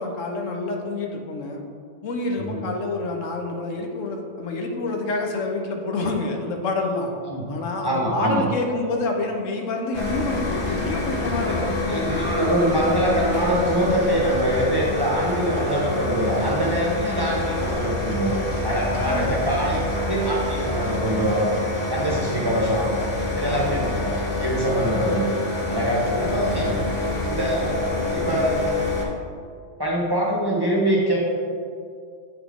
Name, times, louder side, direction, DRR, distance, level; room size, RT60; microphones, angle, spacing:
voice 1, 0.0-1.6 2.0-7.1 7.5-12.1 18.9-19.9 23.4-24.0, left 3 dB, 85° left, 2 dB, 1.1 m, -28 dB
voice 2, 7.8-8.5 11.4-11.6 11.9-21.5 21.9-22.9 23.4-24.1 24.4-25.3 25.7-26.8 27.3-27.8 28.1-28.8 29.8-31.3, right 1 dB, 25° right, -4 dB, 0.7 m, -24 dB
sound 1, 9.9-29.0, left 2 dB, 40° left, 0.9 m, -27 dB
7.8 x 3.9 x 3.6 m, 2.3 s
omnidirectional pair, 1.3 m